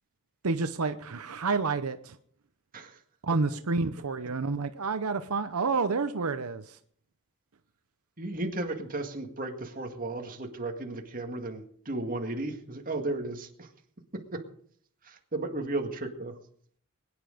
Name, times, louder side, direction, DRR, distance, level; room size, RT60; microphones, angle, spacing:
voice 1, 0.4-2.2 3.2-6.8, right 4 dB, 85° right, 9 dB, 0.8 m, -29 dB
voice 2, 8.2-13.7 14.1-14.5 15.0-16.4, right 2 dB, 40° right, 4 dB, 2.0 m, -34 dB
21.5 x 9.9 x 5.1 m, 0.62 s
head